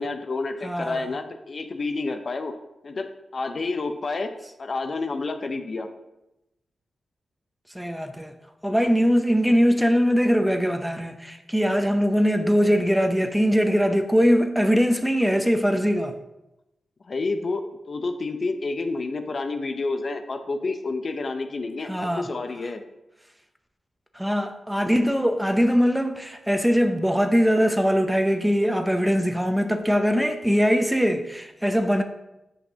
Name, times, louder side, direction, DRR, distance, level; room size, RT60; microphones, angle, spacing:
voice 1, 0.0-2.5 2.8-3.1 3.3-4.3 4.6-5.9 17.0-22.8, left 3 dB, 50° left, 0.6 m, -29 dB
voice 2, 0.6-1.1 7.7-8.3 8.6-16.2 21.9-22.3 24.1-32.0, equal, 5° right, 0.6 m, -21 dB
8.2 x 5.5 x 2.8 m
cardioid pair, 60°, 0 cm